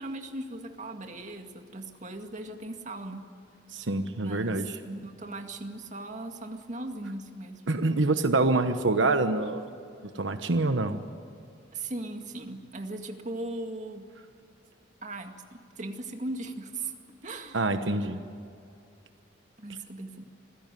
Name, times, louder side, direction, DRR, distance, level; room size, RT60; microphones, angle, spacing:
voice 1, 0.0-3.3 4.2-7.6 11.7-14.1 15.0-17.0 17.2-17.6 19.6-20.2, right 2 dB, 40° right, 4 dB, 2.1 m, -38 dB
voice 2, 3.7-4.7 7.7-9.7 10.1-11.0 17.5-18.2, right 2 dB, 85° right, 8 dB, 1.1 m, -26 dB
26.0 x 16.0 x 9.2 m, 2.5 s
head